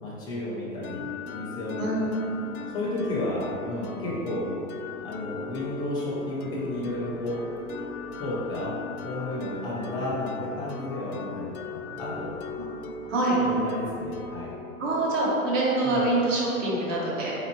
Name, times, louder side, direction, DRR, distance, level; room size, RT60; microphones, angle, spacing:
voice 1, 0.0-2.1 2.7-4.5 5.0-7.4 8.2-8.7 9.0-12.3 13.4-14.5 15.8-16.0, left 1 dB, 10° left, -6 dB, 0.5 m, -32 dB
sound 1, 0.8-16.4, left 5 dB, 75° left, 0.5 m, -39 dB
voice 2, 1.8-2.4 12.6-12.7 13.1-13.4 14.8-17.3, right 2 dB, 60° right, -5 dB, 1.3 m, -25 dB
4.2 x 3.9 x 3.0 m, 2.8 s
hypercardioid pair, 135°, 44 cm